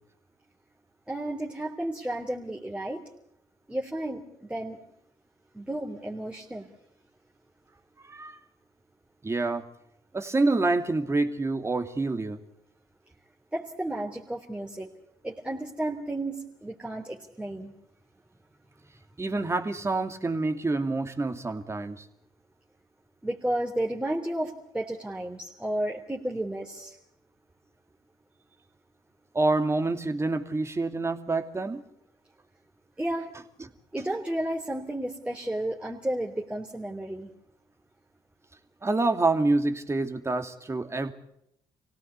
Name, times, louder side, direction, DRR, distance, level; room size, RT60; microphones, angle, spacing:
voice 1, 1.1-3.0 3.7-4.2 4.5-4.8 5.5-6.7 13.5-14.9 15.2-17.7 23.2-26.9 33.0-33.3 33.9-37.3, right 1 dB, 10° right, -3 dB, 3.4 m, -32 dB
voice 2, 8.0-8.4 9.2-9.6 10.1-12.4 19.2-22.0 29.3-31.8 33.6-33.7 38.8-41.1, right 2 dB, 25° right, 6 dB, 2.7 m, -27 dB
25.5 x 17.5 x 8.3 m, 0.76 s
hypercardioid pair, 55°, 11 cm